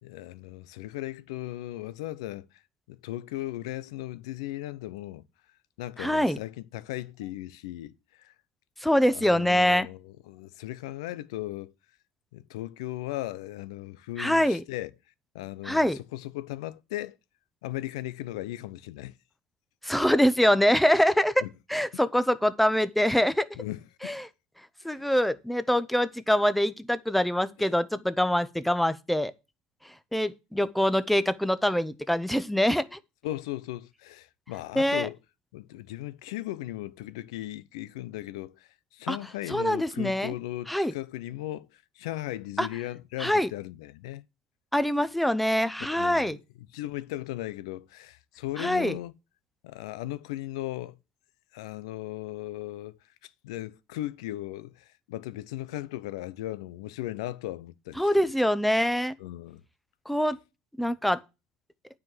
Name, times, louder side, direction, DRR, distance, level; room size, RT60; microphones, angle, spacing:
voice 1, 0.0-2.5 2.9-5.2 5.8-8.3 9.1-11.7 12.3-14.9 15.3-17.2 17.6-19.2 21.4-21.5 23.5-24.2 24.8-25.1 27.6-27.7 33.2-35.2 35.5-44.2 45.9-46.4 46.7-49.1 49.6-51.0 51.5-58.1 59.2-59.6, left 15 dB, 85° left, 0.6 m, -37 dB
voice 2, 6.0-6.4 8.8-9.9 14.2-14.6 15.6-16.0 19.8-21.4 21.7-23.5 24.0-24.3 24.8-29.3 30.1-33.0 34.8-35.1 39.1-39.2 39.5-40.3 40.7-40.9 42.6-42.7 43.2-43.5 44.7-46.4 48.6-49.0 58.0-59.2 60.1-60.4 60.8-61.2, equal, 5° left, 0.8 m, -24 dB
9.4 x 5.0 x 7.5 m
supercardioid pair, 90°, 3 cm